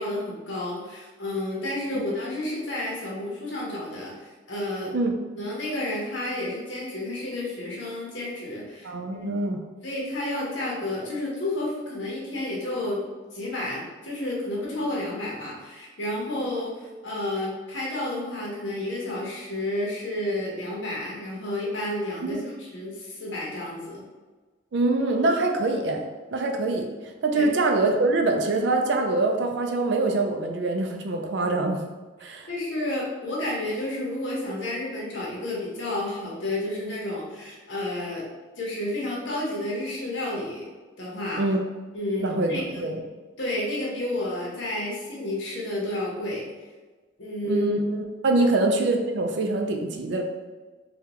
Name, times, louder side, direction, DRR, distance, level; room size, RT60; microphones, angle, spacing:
voice 1, 0.0-4.9 5.3-9.5 9.8-13.0 13.3-16.7 17.0-24.0 27.3-27.4 32.5-38.2 38.6-40.6 41.0-41.4 41.9-42.9 43.4-46.5 47.2-47.7, left 1 dB, 80° left, -4 dB, 1.0 m, -31 dB
voice 2, 8.8-9.6 22.2-22.4 24.7-26.9 27.2-31.8 32.2-32.5 41.4-41.6 42.2-43.0 47.4-50.2, right 2 dB, 70° right, 3 dB, 0.4 m, -24 dB
3.5 x 2.3 x 2.9 m, 1.3 s
head